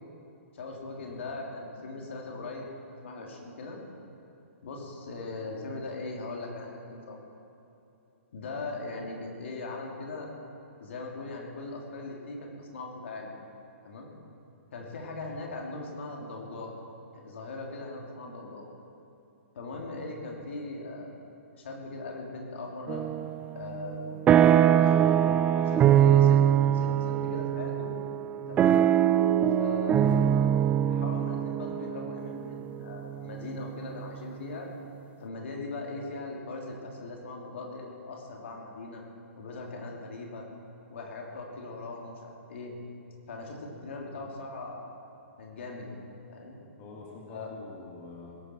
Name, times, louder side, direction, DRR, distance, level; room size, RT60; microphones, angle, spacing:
voice 1, 0.5-2.7 3.0-3.8 4.6-7.2 8.3-10.3 10.8-13.3 13.8-14.1 14.7-16.7 17.1-18.7 19.5-21.2 21.6-23.1 23.5-24.1 24.8-25.2 25.5-27.9 28.5-28.9 29.5-30.2 30.8-34.7 35.2-39.0 39.4-40.5 40.9-42.7 43.3-44.9 45.4-46.0 46.3-46.6 47.3-47.5, left 3 dB, 60° left, 0 dB, 3.0 m, -40 dB
sound 1, 22.9-23.4 23.8-33.8, right 10 dB, 20° right, 0.4 m, -23 dB
voice 2, 46.8-48.4, left 3 dB, 30° left, -2 dB, 2.4 m, -46 dB
20.5 x 12.0 x 4.5 m, 2.8 s
figure-of-eight pair, 120°, 7 cm